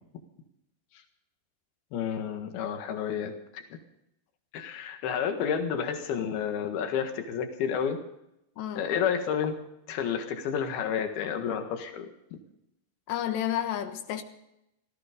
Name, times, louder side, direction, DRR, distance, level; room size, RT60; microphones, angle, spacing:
voice 1, 1.9-3.8 4.5-8.0 8.8-9.5 9.9-12.1 12.3-12.4, left 7 dB, 70° left, 5 dB, 3.5 m, -30 dB
voice 2, 8.6-8.9 13.1-14.2, left 11 dB, 90° left, 8 dB, 3.5 m, -31 dB
17.0 x 15.0 x 5.2 m, 0.83 s
omnidirectional pair, 4.8 m